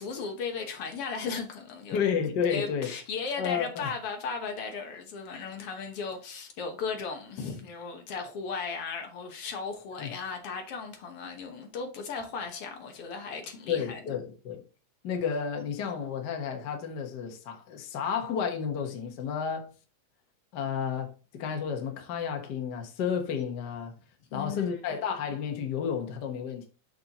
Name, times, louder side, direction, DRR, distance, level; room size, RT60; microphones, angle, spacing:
voice 1, 0.0-2.0 2.5-14.0 24.3-24.8, left 5 dB, 65° left, 1.5 m, -36 dB
voice 2, 1.9-2.9 3.4-3.9 10.0-10.1 13.7-14.7 15.0-19.7 20.5-23.9 24.3-26.7, left 7 dB, 85° left, 0.9 m, -31 dB
6.8 x 6.3 x 2.9 m
omnidirectional pair, 3.8 m